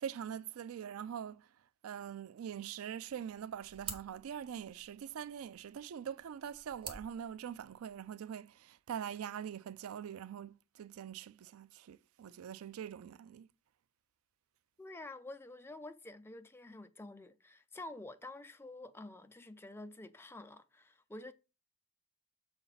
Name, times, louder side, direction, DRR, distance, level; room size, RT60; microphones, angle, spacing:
voice 1, 0.0-1.4 1.8-13.5, right 8 dB, 85° right, 0.3 m, -43 dB
sound 1, 3.1-8.1, right 5 dB, 25° right, 1.0 m, -51 dB
voice 2, 14.8-21.3, left 2 dB, 10° left, 0.4 m, -49 dB
6.9 x 4.9 x 4.0 m
head